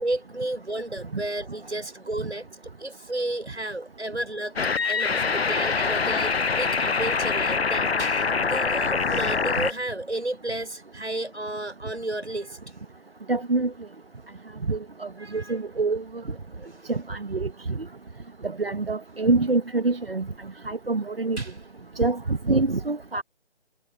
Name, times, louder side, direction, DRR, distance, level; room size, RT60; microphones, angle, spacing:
voice 1, 0.0-2.5 2.8-12.6 15.2-15.6 16.7-16.9 21.4-21.6, right 1 dB, 75° right, 6.8 m, -32 dB
sound 1, 4.6-9.7, left 5 dB, 65° left, 0.7 m, -24 dB
voice 2, 13.3-13.7 14.7-15.1 15.5-16.0 16.9-17.5 18.6-20.2 20.7-21.4 22.0-23.2, right 3 dB, 60° right, 1.3 m, -25 dB
figure-of-eight pair, 160°, 33 cm